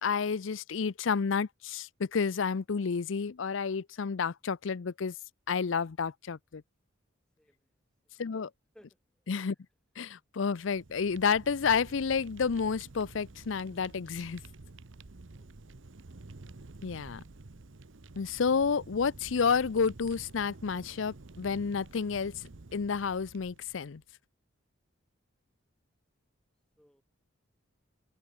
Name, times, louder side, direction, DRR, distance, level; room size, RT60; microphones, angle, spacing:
voice 1, 0.0-5.1 5.5-6.6 8.2-8.5 9.3-9.6 10.0-14.4 16.8-17.2 18.2-22.4 22.7-24.0, left 5 dB, 70° left, 0.5 m, -30 dB
voice 2, 8.7-9.2 15.3-15.8 26.8-27.0, equal, 5° left, 5.2 m, -62 dB
Fire, 10.5-24.0, right 2 dB, 70° right, 1.0 m, -50 dB
head